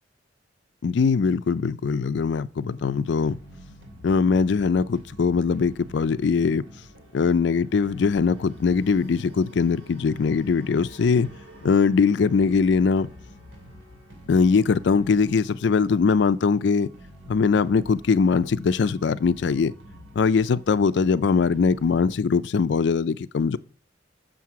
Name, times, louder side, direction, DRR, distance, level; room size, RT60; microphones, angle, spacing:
voice 1, 0.8-3.4 4.0-6.6 7.1-11.3 11.6-13.1 14.3-16.9 17.3-19.7 20.2-23.6, left 5 dB, 65° left, 0.4 m, -21 dB
sound 1, 2.7-22.2, equal, 80° right, 2.9 m, -47 dB
7.6 x 6.4 x 4.7 m
head